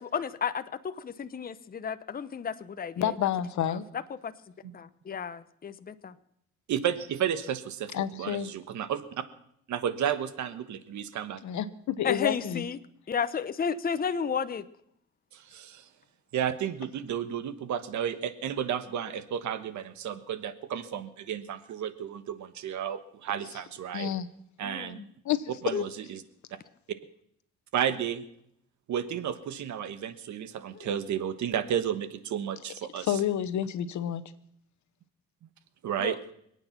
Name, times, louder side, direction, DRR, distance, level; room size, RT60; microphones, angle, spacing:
voice 1, 0.0-3.1 3.7-3.8 4.2-4.3 4.7-6.1 12.0-12.8 13.1-14.6 24.6-25.1 25.7-25.8 30.7-30.9 36.0-36.2, left 6 dB, 30° left, 11 dB, 0.8 m, -32 dB
voice 2, 3.0-3.8 7.9-8.5 11.4-12.6 23.9-24.3 25.2-25.5 33.0-34.2, left 10 dB, 70° left, 13 dB, 1.2 m, -29 dB
voice 3, 6.7-9.0 9.7-11.4 15.3-15.9 16.3-24.1 24.6-25.0 25.6-26.2 27.7-28.2 28.9-33.2 35.8-36.2, right 9 dB, 70° right, 12 dB, 1.3 m, -32 dB
26.0 x 9.0 x 5.9 m, 0.73 s
cardioid pair, 90°, 30 cm